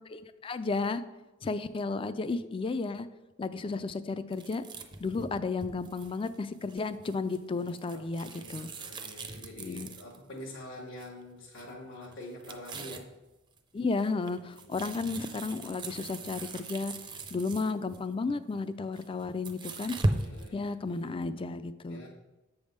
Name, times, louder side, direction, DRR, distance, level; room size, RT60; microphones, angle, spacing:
voice 1, 0.1-1.0 1.4-3.1 3.4-4.6 5.0-8.7 9.6-9.9 13.7-16.9 17.3-20.0 20.5-22.0, left 3 dB, 25° left, 13 dB, 0.3 m, -33 dB
sound 1, 4.3-10.4 11.0-11.2 11.5-11.7 12.0-13.1 13.6-18.0 18.8-20.5, right 2 dB, 25° right, 0.5 m, -38 dB
voice 2, 7.9-13.1 14.6-14.9 20.1-21.5 21.9-22.1, left 1 dB, 65° left, -3 dB, 1.1 m, -46 dB
7.9 x 3.5 x 6.5 m, 1.1 s
head